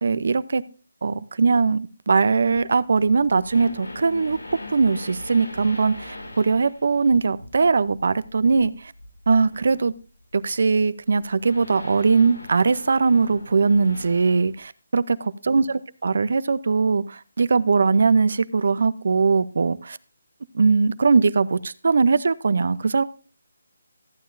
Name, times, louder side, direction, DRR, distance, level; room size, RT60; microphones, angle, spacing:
voice 1, 0.0-0.6 1.0-4.4 4.7-8.9 9.3-9.9 10.3-20.0 20.5-23.0, right 4 dB, 60° right, 16 dB, 0.6 m, -20 dB
sound 1, 2.5-10.0 10.4-10.5 11.2-14.6, left 1 dB, 90° left, 4.9 m, -40 dB
14.0 x 9.3 x 2.6 m, 0.36 s
hypercardioid pair, 165°, 0 cm